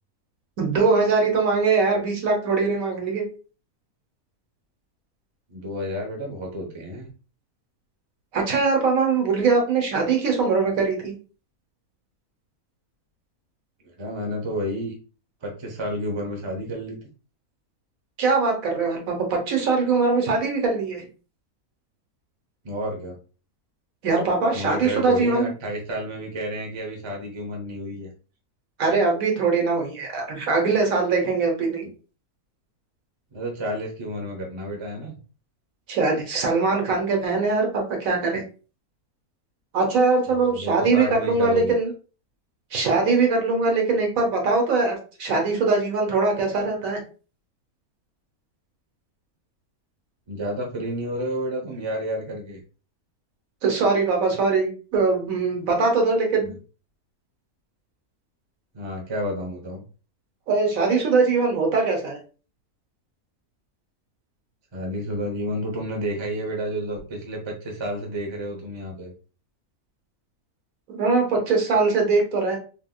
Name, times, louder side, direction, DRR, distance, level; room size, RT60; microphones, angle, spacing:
voice 1, 0.6-3.2 8.3-11.1 18.2-21.0 24.0-25.5 28.8-31.9 35.9-38.4 39.7-41.9 42.7-47.0 53.6-56.5 60.5-62.2 70.9-72.6, right 4 dB, 70° right, 1 dB, 1.3 m, -22 dB
voice 2, 5.5-7.1 14.0-14.9 15.4-17.0 22.6-23.2 24.5-28.1 33.3-35.2 40.4-41.8 50.3-52.6 56.4-56.6 58.7-59.8 64.7-69.1, equal, 30° right, 0 dB, 0.6 m, -30 dB
3.6 x 2.8 x 2.2 m, 0.36 s
omnidirectional pair, 1.6 m